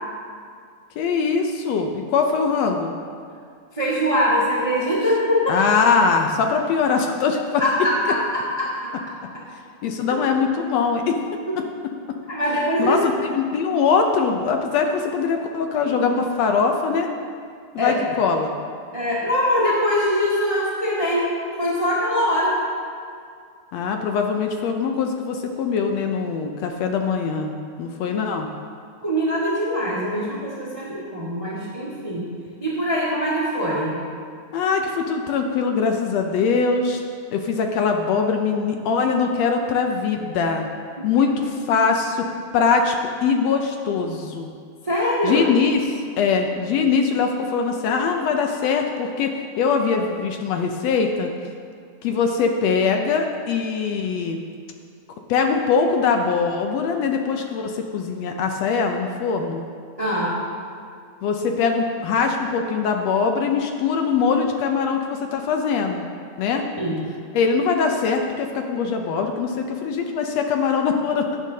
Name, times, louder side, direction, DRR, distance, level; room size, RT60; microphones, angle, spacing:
voice 1, 1.0-2.9 5.5-7.6 9.8-11.2 11.6-11.9 12.8-17.1 17.7-18.5 23.7-27.5 27.8-28.5 34.5-37.0 37.3-40.7 41.0-42.3 42.5-44.5 45.2-51.3 52.0-54.4 55.3-59.6 61.2-66.1 66.4-66.7 67.3-71.4, left 5 dB, 75° left, 4 dB, 1.7 m, -22 dB
voice 2, 3.7-5.6 7.6-8.9 11.5-11.6 12.3-13.0 17.8-17.9 18.9-21.3 21.6-22.6 29.0-32.3 32.6-34.0 41.0-41.1 44.8-45.4 60.0-60.4 66.8-67.0, equal, 15° right, -7 dB, 1.3 m, -22 dB
16.5 x 9.0 x 2.8 m, 2.2 s
omnidirectional pair, 3.3 m